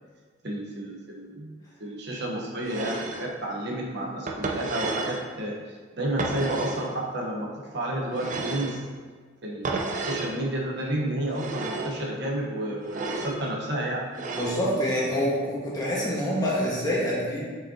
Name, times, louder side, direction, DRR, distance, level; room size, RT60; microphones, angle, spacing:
voice 1, 0.4-5.6 5.9-7.5 7.7-8.8 9.4-14.0, right 1 dB, 60° right, -2 dB, 1.1 m, -31 dB
sound 1, 2.6-3.3 4.3-5.2 6.2-6.9 8.1-8.8 9.6-10.3 11.3-12.0 12.8-13.4 14.1-14.7, right 3 dB, 40° right, 0.6 m, -32 dB
voice 2, 14.3-17.4, equal, 20° left, -6 dB, 1.5 m, -26 dB
6.4 x 5.4 x 2.8 m, 1.5 s
head